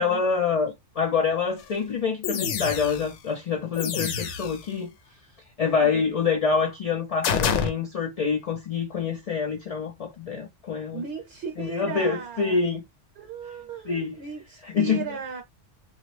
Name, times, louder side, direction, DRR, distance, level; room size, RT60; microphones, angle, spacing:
voice 1, 0.0-4.9 5.6-11.0 11.6-12.8 13.9-14.2 14.7-15.0, left 5 dB, 50° left, 0.4 m, -26 dB
sound 1, 1.6-1.7 2.2-3.2 3.7-4.7 7.2-7.7, left 7 dB, 80° left, 0.9 m, -27 dB
voice 2, 10.9-12.6 13.2-15.4, right 6 dB, 65° right, 0.9 m, -36 dB
2.9 x 2.4 x 3.1 m
omnidirectional pair, 1.2 m